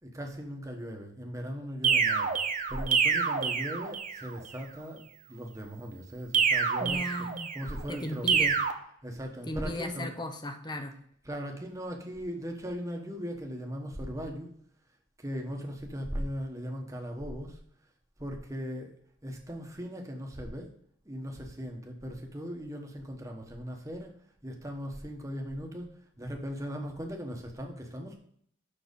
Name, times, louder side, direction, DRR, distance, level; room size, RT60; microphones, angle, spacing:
voice 1, 0.0-2.3 2.7-7.1 7.5-8.3 9.0-10.1 11.2-14.5 15.2-17.6 18.2-18.9 19.2-20.7 21.0-24.1 24.4-28.2, equal, 15° right, 2 dB, 1.2 m, -38 dB
sound 1, 1.8-4.3 6.3-7.7 8.3-8.7, right 6 dB, 40° right, 0.7 m, -27 dB
voice 2, 6.8-7.5 7.9-8.5 9.5-11.0, equal, 20° left, 7 dB, 0.8 m, -36 dB
6.6 x 5.9 x 5.3 m, 0.66 s
head